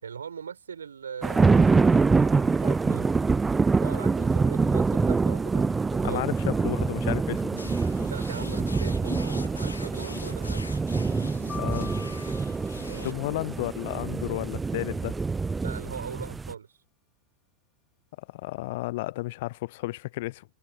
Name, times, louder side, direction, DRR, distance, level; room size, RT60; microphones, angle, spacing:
voice 1, 0.0-3.2 3.8-6.2 8.0-10.7 12.9-13.3 15.6-16.8, right 7 dB, 70° right, 6.0 m, -41 dB
sound 1, 1.2-16.5, right 4 dB, 15° right, 0.5 m, -25 dB
voice 2, 6.0-7.6 11.5-11.9 13.0-15.2 18.3-20.4, left 19 dB, 50° left, 0.8 m, -32 dB
sound 2, 7.6-13.1, left 3 dB, 80° left, 4.4 m, -42 dB
sound 3, 11.5-13.6, left 7 dB, 20° left, 5.4 m, -44 dB
figure-of-eight pair, 90°, 0 cm